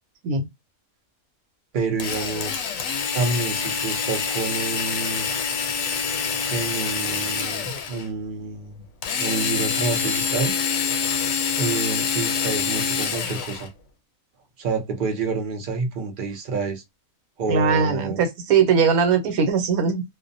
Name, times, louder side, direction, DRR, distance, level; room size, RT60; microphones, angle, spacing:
voice 1, 1.7-2.7 3.1-5.3 6.5-8.8 9.2-10.5 11.5-13.7 14.6-16.8 17.4-18.2, right 4 dB, 50° right, 0.7 m, -28 dB
Drill, 2.0-8.1 9.0-13.7, left 6 dB, 75° left, 1.0 m, -26 dB
voice 2, 17.5-20.0, right 6 dB, 85° right, 1.2 m, -20 dB
2.5 x 2.0 x 2.6 m
omnidirectional pair, 1.5 m